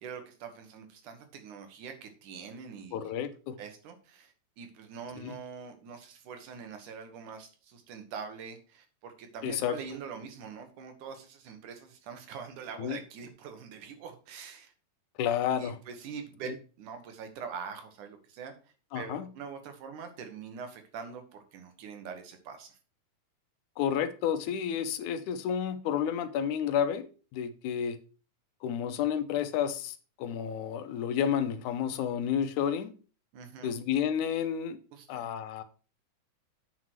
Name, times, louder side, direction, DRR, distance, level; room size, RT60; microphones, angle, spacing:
voice 1, 0.0-3.1 3.6-14.7 15.6-16.5 16.8-18.5 18.9-22.7 33.3-33.7 34.9-35.2, right 6 dB, 85° right, 6 dB, 2.9 m, -44 dB
voice 2, 2.9-3.6 5.2-5.4 9.4-9.8 12.8-13.0 15.2-15.8 18.9-19.3 23.8-27.1 27.3-28.0 28.6-32.9 33.6-34.8 35.1-35.6, left 8 dB, 85° left, 11 dB, 2.3 m, -30 dB
8.4 x 6.2 x 4.6 m, 0.36 s
omnidirectional pair, 3.4 m